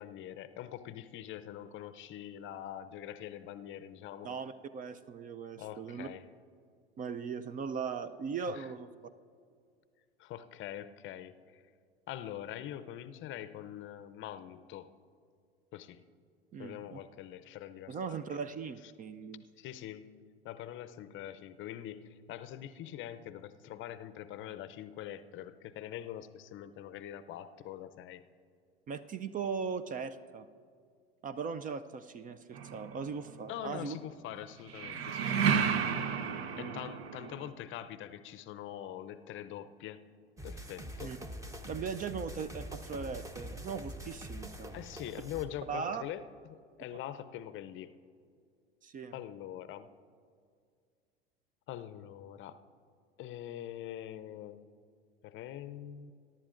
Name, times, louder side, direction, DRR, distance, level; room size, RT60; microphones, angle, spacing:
voice 1, 0.0-4.3 5.6-6.3 8.5-8.7 10.2-11.6 12.1-14.9 15.7-16.0 16.6-18.4 19.6-28.2 33.5-35.5 36.6-40.0 40.4-41.2 44.7-47.9 49.1-49.9 51.7-52.6 53.2-54.7 55.2-56.1, left 11 dB, 40° left, 13 dB, 0.6 m, -44 dB
voice 2, 4.2-6.1 7.0-8.9 16.5-17.0 17.9-19.4 28.9-30.5 31.2-34.0 36.5-36.8 41.0-41.2 41.7-44.7 45.7-46.0 48.8-49.1, right 6 dB, 25° right, 14 dB, 0.4 m, -39 dB
sound 1, 32.5-33.4 34.7-37.5, right 7 dB, 75° right, 0.8 m, -32 dB
sound 2, 40.4-45.4, equal, 10° right, 1.0 m, -44 dB
22.0 x 11.0 x 2.5 m, 2.2 s
hypercardioid pair, 85°, 31 cm